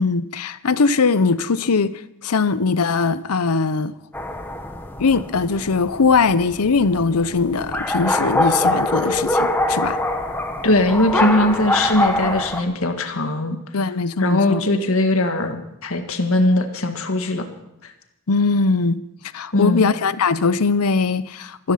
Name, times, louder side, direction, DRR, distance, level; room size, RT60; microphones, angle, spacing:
voice 1, 0.0-3.9 5.0-10.0 13.7-14.6 18.3-19.0 19.3-21.7, left 4 dB, 90° left, 0.7 m, -20 dB
sound 1, 4.1-12.6, left 1 dB, 10° left, 1.1 m, -24 dB
voice 2, 10.6-13.6 14.2-17.5 19.5-19.9, left 1 dB, 70° left, 1.7 m, -20 dB
14.5 x 14.0 x 5.7 m
head